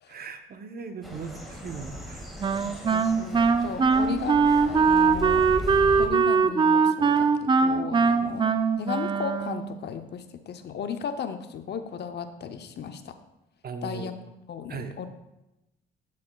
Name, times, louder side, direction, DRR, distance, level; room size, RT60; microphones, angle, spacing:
voice 1, 0.1-2.3 2.9-3.1 13.6-14.1 14.7-15.1, right 5 dB, 50° right, 7 dB, 0.8 m, -39 dB
sound 1, 1.0-6.1, right 1 dB, ahead, 1.8 m, -38 dB
Wind instrument woodwind instrument, 2.4-9.8, right 5 dB, 25° right, 0.4 m, -22 dB
voice 2, 2.6-5.5 6.0-13.2 13.8-14.1 14.5-15.1, left 7 dB, 55° left, 8 dB, 0.7 m, -35 dB
11.5 x 7.5 x 2.3 m, 0.92 s
cardioid pair, 90°, 20 cm